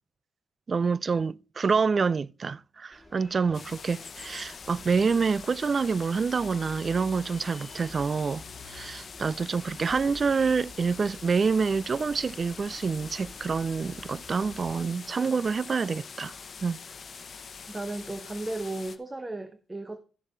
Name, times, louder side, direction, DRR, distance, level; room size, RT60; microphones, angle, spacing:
voice 1, 0.7-16.3 16.6-16.8, right 5 dB, 40° right, 0.3 m, -27 dB
Bus, 2.9-14.8, left 2 dB, 5° left, 4.2 m, -50 dB
sound 1, 3.5-19.0, left 5 dB, 45° left, 1.0 m, -44 dB
voice 2, 17.7-20.0, right 2 dB, 20° right, 0.9 m, -35 dB
13.5 x 7.2 x 3.2 m
cardioid pair, 75°, 0 cm